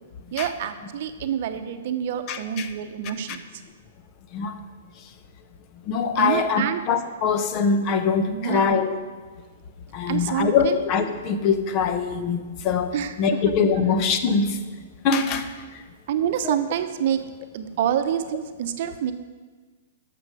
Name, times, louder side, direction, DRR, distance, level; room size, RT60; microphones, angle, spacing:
voice 1, 0.3-3.4 6.2-6.8 8.3-8.7 10.1-10.8 12.9-13.1 15.2-15.4 16.1-17.2 17.5-19.1, right 9 dB, 55° right, 9 dB, 0.8 m, -27 dB
voice 2, 2.3-2.7 3.3-3.4 4.3-4.5 5.9-8.9 9.9-12.9 13.2-14.6 15.0-15.5 16.4-16.6, left 5 dB, 40° left, 9 dB, 0.9 m, -23 dB
12.0 x 6.8 x 4.9 m, 1.4 s
hypercardioid pair, 125°, 0 cm